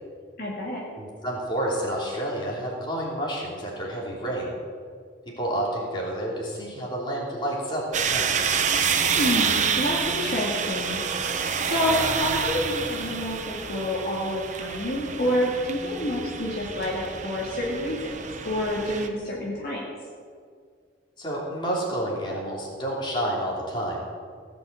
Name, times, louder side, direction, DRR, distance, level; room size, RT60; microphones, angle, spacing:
voice 1, 0.4-0.8 9.0-11.0 11.3-18.0 18.4-19.8, left 1 dB, 50° left, -4 dB, 2.3 m, -28 dB
voice 2, 1.0-4.5 5.2-8.3 21.2-24.0, right 1 dB, 25° left, -4 dB, 3.1 m, -29 dB
sound 1, 7.9-19.1, right 6 dB, 40° right, 0.9 m, -28 dB
17.0 x 6.2 x 8.0 m, 2.1 s
head